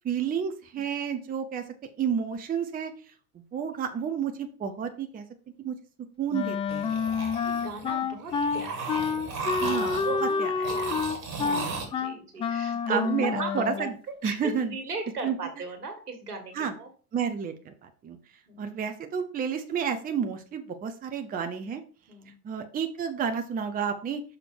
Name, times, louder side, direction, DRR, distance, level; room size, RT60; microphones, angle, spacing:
voice 1, 0.0-1.6 2.0-3.1 3.5-5.2 5.6-5.8 6.2-7.0 9.6-10.0 10.4-10.7 11.4-11.8 12.9-13.9 14.2-14.7 15.2-15.4 16.5-16.7 17.1-18.2 18.6-21.8 22.4-24.2, right 7 dB, 20° right, 7 dB, 0.7 m, -31 dB
Wind instrument woodwind instrument, 6.3-13.9, left 5 dB, 15° left, 0.3 m, -28 dB
sound 1, 6.7-7.9 8.3-10.3 10.6-11.8, right 4 dB, 35° right, 2.0 m, -35 dB
voice 2, 7.4-9.3 10.0-10.4 10.7-13.9 14.2-16.9 18.5-18.8 22.1-22.4, right 3 dB, 75° right, 5 dB, 1.8 m, -38 dB
6.1 x 5.0 x 4.6 m, 0.39 s
figure-of-eight pair, 75°, 46 cm